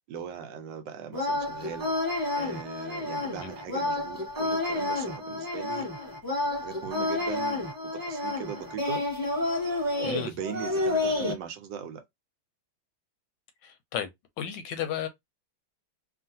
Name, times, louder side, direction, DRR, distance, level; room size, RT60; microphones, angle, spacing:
voice 1, 0.1-1.9 2.3-5.9 6.5-9.0 10.0-12.0, right 7 dB, 75° right, 1.2 m, -39 dB
sound 1, 1.1-11.3, left 2 dB, 10° right, 1.2 m, -30 dB
voice 2, 13.6-14.1 14.4-15.1, left 9 dB, 75° left, 1.2 m, -33 dB
3.1 x 2.5 x 2.7 m
omnidirectional pair, 2.1 m